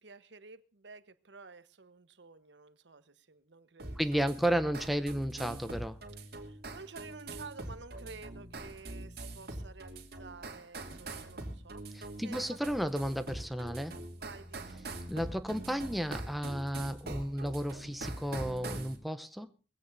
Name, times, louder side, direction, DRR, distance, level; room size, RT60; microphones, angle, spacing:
voice 1, 0.0-4.4 4.7-5.1 6.3-12.9 14.1-14.9, right 4 dB, 80° right, 1.1 m, -52 dB
sound 1, 3.8-19.0, right 2 dB, 60° right, 2.6 m, -43 dB
voice 2, 4.0-6.0 11.9-14.0 15.1-19.5, equal, ahead, 0.7 m, -33 dB
21.0 x 16.5 x 2.6 m
head